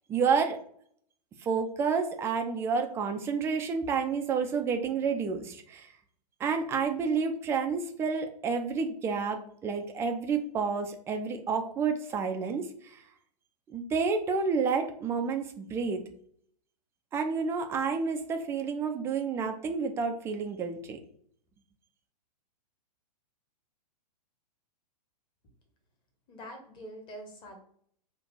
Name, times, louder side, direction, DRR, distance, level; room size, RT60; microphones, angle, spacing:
voice 1, 0.1-0.6 1.4-5.9 6.4-13.0 13.7-16.0 17.1-21.0, right 5 dB, 10° right, 5 dB, 0.4 m, -30 dB
voice 2, 26.3-27.6, equal, 20° left, 4 dB, 1.2 m, -45 dB
3.9 x 2.5 x 4.5 m, 0.63 s
figure-of-eight pair, 110°, 21 cm